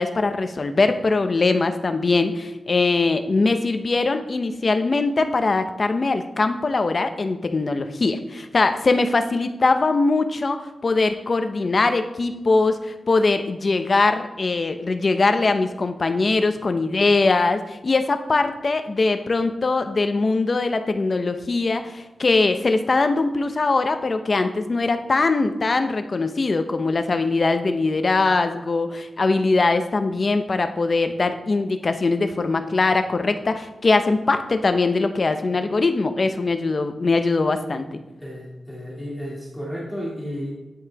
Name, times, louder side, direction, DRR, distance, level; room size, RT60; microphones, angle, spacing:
voice 1, 0.0-38.0, left 3 dB, 40° left, 8 dB, 0.7 m, -21 dB
voice 2, 38.2-40.5, equal, ahead, -6 dB, 2.4 m, -32 dB
9.7 x 6.3 x 4.7 m, 1.1 s
wide cardioid pair, 155°, 0 cm